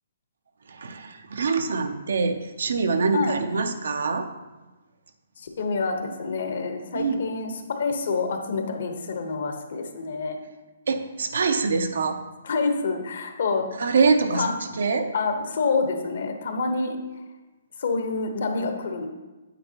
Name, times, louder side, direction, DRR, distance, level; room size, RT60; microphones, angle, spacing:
voice 1, 0.7-4.3 6.9-7.2 10.9-12.2 13.8-15.1, right 4 dB, 80° right, 6 dB, 0.6 m, -24 dB
voice 2, 5.4-10.4 12.4-13.6 14.3-14.5 15.1-17.0 17.8-19.1, left 4 dB, 65° left, 5 dB, 1.1 m, -27 dB
8.8 x 7.9 x 2.9 m, 1.1 s
hypercardioid pair, 160°, 0 cm